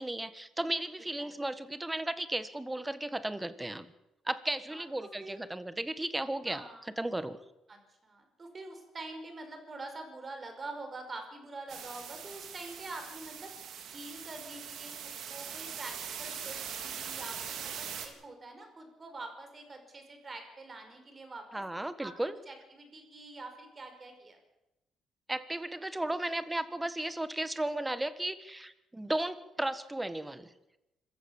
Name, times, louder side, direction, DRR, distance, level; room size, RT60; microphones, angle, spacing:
voice 1, 0.0-3.9 4.2-6.6 7.0-7.4 21.5-22.3 25.3-30.5, right 1 dB, 10° right, 13 dB, 1.4 m, -35 dB
voice 2, 4.7-5.4 6.5-6.8 7.7-13.5 13.9-21.6 22.0-24.4, right 2 dB, 30° right, 5 dB, 5.3 m, -46 dB
sound 1, 11.7-18.1, right 8 dB, 70° right, 3.5 m, -42 dB
26.0 x 15.0 x 7.2 m, 0.94 s
cardioid pair, 100°, 0 cm